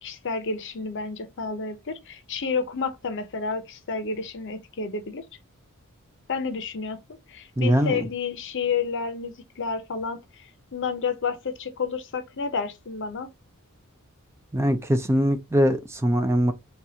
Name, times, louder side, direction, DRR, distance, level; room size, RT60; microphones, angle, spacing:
voice 1, 0.0-5.2 6.3-7.0 7.3-13.3, left 5 dB, 55° left, 0.7 m, -30 dB
voice 2, 7.6-8.1 14.5-16.5, equal, 10° right, 0.4 m, -22 dB
4.1 x 2.4 x 2.7 m
head